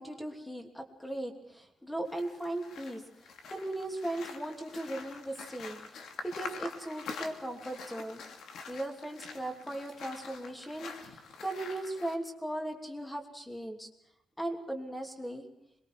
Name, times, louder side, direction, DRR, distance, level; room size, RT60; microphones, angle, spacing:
voice 1, 0.0-3.0 3.5-5.8 6.2-8.2 8.7-13.9 14.4-15.5, right 1 dB, 5° left, 3 dB, 3.0 m, -38 dB
sound 1, 2.1-12.2, left 5 dB, 75° left, 2.7 m, -46 dB
27.0 x 22.0 x 4.7 m, 0.80 s
wide cardioid pair, 155°, 0 cm